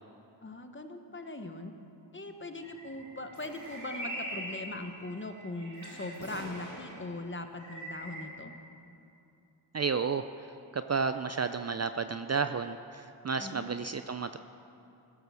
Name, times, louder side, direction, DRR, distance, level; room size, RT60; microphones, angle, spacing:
voice 1, 0.4-1.7 2.1-8.5 13.4-13.7, left 2 dB, 25° left, 6 dB, 1.1 m, -40 dB
sound 1, 2.6-7.1 7.5-8.3, right 1 dB, 55° right, 4.0 m, -42 dB
voice 2, 9.7-10.3 10.7-14.4, right 5 dB, 35° right, 10 dB, 0.4 m, -32 dB
16.0 x 8.0 x 6.8 m, 2.7 s
cardioid pair, 55°, 44 cm